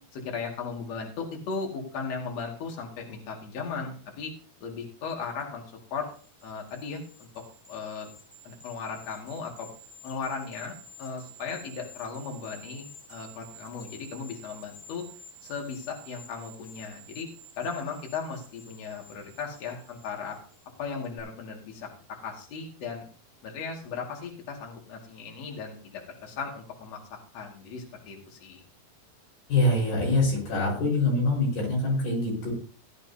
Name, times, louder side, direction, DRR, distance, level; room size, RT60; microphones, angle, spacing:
voice 1, 0.1-4.3 4.6-5.6 5.9-6.1 6.4-7.3 7.7-8.1 8.4-9.7 10.0-15.0 15.4-17.3 17.6-20.4 20.8-21.9 22.2-23.1 23.4-27.0 27.3-28.6, left 5 dB, 50° left, 0 dB, 3.0 m, -36 dB
sound 1, 6.1-20.7 21.0-21.2, equal, ahead, 4.7 m, -51 dB
voice 2, 29.5-32.5, left 2 dB, 70° left, -1 dB, 6.7 m, -24 dB
17.0 x 10.5 x 2.8 m, 0.41 s
omnidirectional pair, 4.4 m